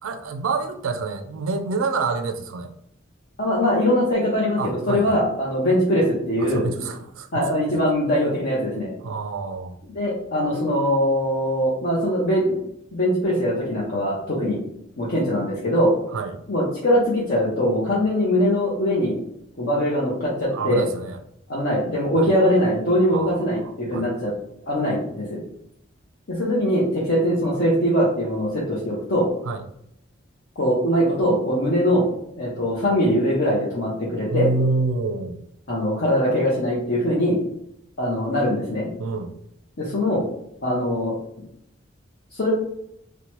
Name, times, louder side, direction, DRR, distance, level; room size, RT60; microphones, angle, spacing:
voice 1, 0.0-2.7 4.6-5.2 6.4-7.7 9.0-9.8 16.1-16.4 20.5-21.2 22.2-22.3 23.1-24.2 29.4-29.6 34.3-35.4 39.0-39.3, right 3 dB, 85° right, 7 dB, 0.4 m, -28 dB
voice 2, 3.4-6.7 7.3-8.9 9.9-12.6 12.9-14.6 15.0-15.9 16.5-19.1 19.6-20.8 21.5-24.3 24.7-25.4 26.3-29.3 30.6-32.1 32.4-34.5 35.7-37.4 38.0-38.9 39.8-40.2 40.6-41.1 42.3-42.5, equal, 55° left, -7 dB, 0.7 m, -22 dB
2.9 x 2.1 x 2.9 m, 0.75 s
head